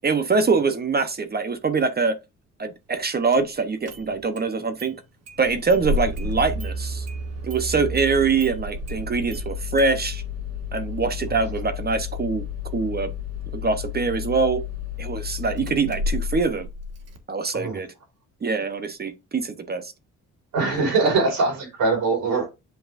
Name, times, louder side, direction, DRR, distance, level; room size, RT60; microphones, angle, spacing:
voice 1, 0.0-2.2 2.6-5.0 5.4-7.1 7.4-10.2 10.7-12.5 12.7-13.1 13.5-14.6 15.0-16.7 17.3-17.9 18.4-19.9, right 4 dB, 30° right, 0.9 m, -24 dB
Engine starting, 3.3-3.4 3.9-4.5 4.8-4.9 5.3-17.2, left 3 dB, 55° right, 1.5 m, -31 dB
voice 2, 20.5-22.5, right 3 dB, 80° right, 4.5 m, -22 dB
7.8 x 5.2 x 2.5 m
cardioid pair, 90°, 30 cm